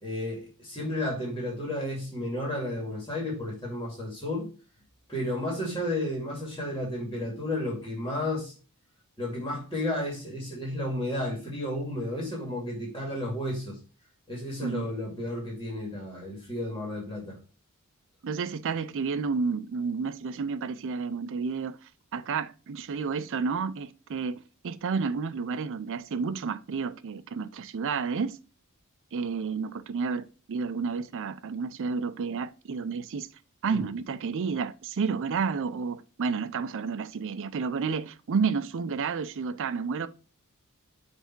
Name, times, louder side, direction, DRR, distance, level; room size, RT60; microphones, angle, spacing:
voice 1, 0.0-4.5 5.1-8.5 9.2-13.8 14.3-17.4 33.7-33.9, left 1 dB, 15° left, 2.3 m, -32 dB
voice 2, 18.2-21.8 22.1-28.4 29.1-33.3 33.6-40.1, right 5 dB, 60° right, 0.4 m, -31 dB
6.7 x 3.4 x 4.5 m
head